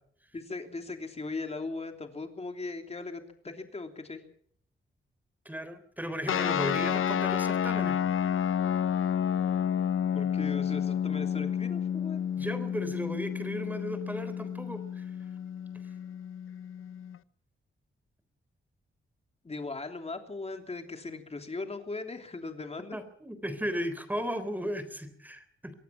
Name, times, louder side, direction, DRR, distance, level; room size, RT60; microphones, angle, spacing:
voice 1, 0.3-4.2 10.1-12.2 19.4-23.0, left 3 dB, 30° left, 5 dB, 3.2 m, -38 dB
voice 2, 5.5-8.0 12.4-15.1 22.9-25.7, equal, 10° right, 12 dB, 3.7 m, -35 dB
sound 1, 6.3-17.2, left 8 dB, 85° left, 0.8 m, -30 dB
24.5 x 18.0 x 5.9 m, 0.63 s
wide cardioid pair, 110°, 21 cm